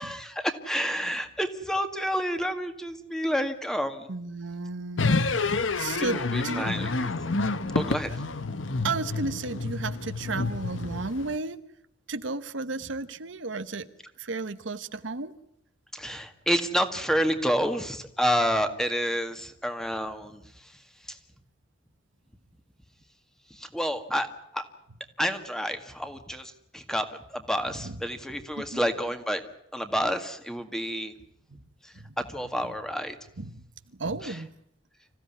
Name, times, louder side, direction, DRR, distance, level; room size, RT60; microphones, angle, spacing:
voice 1, 0.0-4.1 5.4-5.8 6.1-7.1 7.7-8.1 15.9-20.4 21.1-21.2 23.5-24.6 25.2-29.4 29.7-31.1 31.8-33.2 34.2-34.4, equal, 5° left, 8 dB, 1.9 m, -29 dB
voice 2, 4.1-6.7 8.8-11.6 12.1-13.9 14.2-15.3 27.8-28.0 28.6-28.8 31.5-31.6 31.9-32.2 33.4-33.6 33.9-34.5, right 3 dB, 75° right, 11 dB, 1.2 m, -33 dB
sound 1, 5.0-11.4, left 3 dB, 90° left, 1.2 m, -29 dB
26.5 x 16.0 x 9.7 m, 0.76 s
head